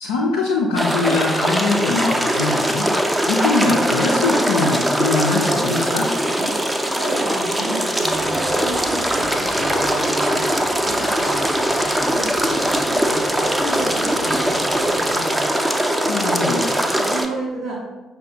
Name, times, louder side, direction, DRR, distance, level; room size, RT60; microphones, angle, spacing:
voice 1, 0.0-2.9 3.3-6.1 16.1-16.7, left 3 dB, 70° left, -4 dB, 0.3 m, -22 dB
sound 1, 0.8-17.3, right 1 dB, 10° right, 0.4 m, -21 dB
voice 2, 6.8-11.5 11.7-15.6 16.8-17.8, right 1 dB, 65° right, -4 dB, 0.8 m, -31 dB
sound 2, 8.0-15.2, left 2 dB, 25° left, 0.7 m, -36 dB
5.6 x 2.1 x 2.7 m, 1.1 s
figure-of-eight pair, 45°, 0 cm